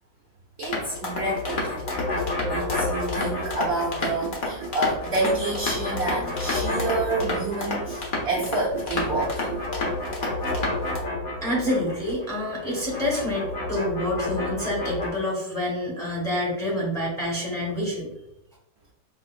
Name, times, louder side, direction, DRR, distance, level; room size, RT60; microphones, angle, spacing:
sound 1, 0.6-11.0, left 2 dB, 50° left, 0.6 m, -31 dB
voice 1, 0.6-1.9 2.1-10.0, right 2 dB, 80° right, -4 dB, 0.6 m, -28 dB
sound 2, 0.7-4.3 4.6-8.3 8.5-15.1, left 2 dB, 70° left, 1.6 m, -31 dB
voice 2, 11.4-18.1, left 1 dB, 5° left, -4 dB, 0.8 m, -27 dB
5.1 x 2.1 x 2.4 m, 0.82 s
omnidirectional pair, 1.8 m